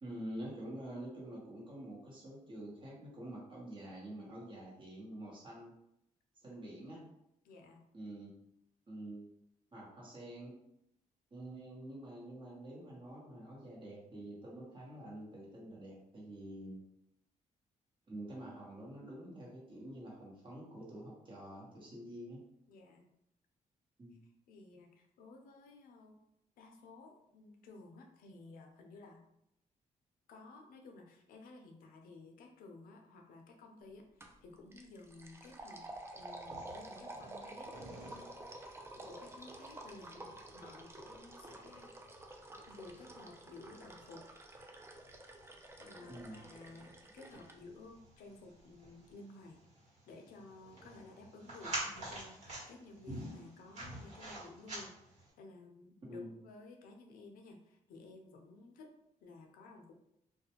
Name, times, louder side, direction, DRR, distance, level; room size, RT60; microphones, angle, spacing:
voice 1, 0.0-5.7 6.4-7.1 7.9-8.3 8.9-9.3 9.7-10.5 11.3-16.8 18.1-22.4 24.0-24.2 46.1-46.4 56.1-56.3, right 1 dB, 35° right, -4 dB, 1.1 m, -47 dB
voice 2, 7.4-7.8 22.7-23.0 24.5-26.2 26.6-29.2 30.3-35.9 36.2-37.8 39.0-42.1 42.7-44.3 45.8-49.6 49.9-58.9 59.2-59.9, left 3 dB, 90° left, 3 dB, 0.5 m, -55 dB
sound 1, 34.2-34.4 34.7-47.6, right 1 dB, 20° right, 0.4 m, -50 dB
sound 2, 35.9-55.3, right 1 dB, 50° right, 1.3 m, -50 dB
2.4 x 2.2 x 2.8 m, 0.80 s
cardioid pair, 80°, 14 cm